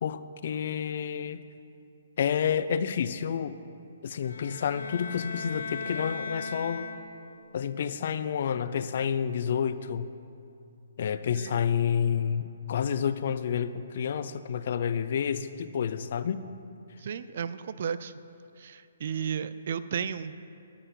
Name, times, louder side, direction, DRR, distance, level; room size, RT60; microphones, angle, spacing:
voice 1, 0.0-1.4 2.2-3.6 4.0-6.9 7.5-10.1 11.0-16.4, left 8 dB, 55° left, 13 dB, 0.5 m, -29 dB
sound 1, 4.2-7.4, left 4 dB, 85° left, 1.0 m, -38 dB
voice 2, 17.0-18.1 18.6-20.3, right 7 dB, 55° right, 14 dB, 0.4 m, -34 dB
11.5 x 5.8 x 7.4 m, 2.5 s
hypercardioid pair, 160°, 0 cm